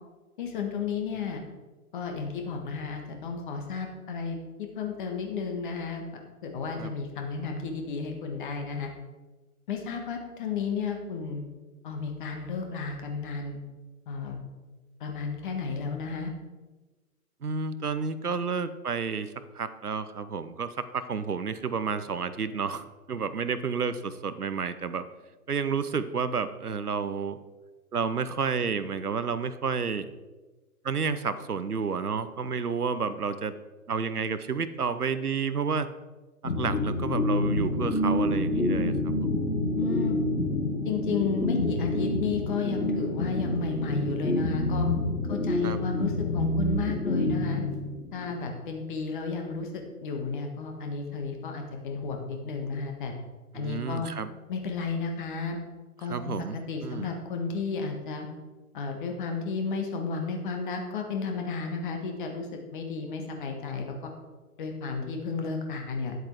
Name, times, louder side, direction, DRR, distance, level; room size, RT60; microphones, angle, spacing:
voice 1, 0.4-1.4 1.9-4.4 4.7-6.0 6.4-8.9 9.7-11.4 11.8-13.6 14.1-14.3 15.0-16.3 39.7-40.2 40.8-44.9 45.3-47.6 48.1-53.1 53.5-54.1 54.5-55.6 56.0-56.4 56.7-58.3 58.7-62.5 62.7-64.1 64.6-66.2, left 5 dB, 35° left, 3 dB, 1.7 m, -33 dB
voice 2, 17.4-25.1 25.5-27.4 27.9-30.1 30.8-33.5 33.9-35.9 36.4-39.3 45.6-45.8 53.5-54.3 56.0-57.1, right 5 dB, 80° right, 13 dB, 0.8 m, -30 dB
sound 1, 36.4-48.3, left 1 dB, 90° left, 1.7 m, -27 dB
10.5 x 7.8 x 4.6 m, 1.2 s
figure-of-eight pair, 125°, 45 cm